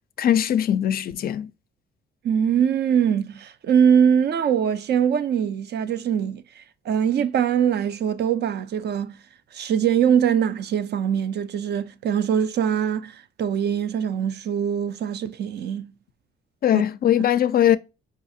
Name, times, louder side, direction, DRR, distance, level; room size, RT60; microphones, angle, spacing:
voice 1, 0.2-1.5 16.6-17.8, left 10 dB, 50° left, 0.4 m, -20 dB
voice 2, 2.2-9.2 9.5-15.9 16.7-16.8, right 8 dB, 55° right, 0.4 m, -22 dB
4.9 x 2.4 x 2.6 m
cardioid pair, 90°, 20 cm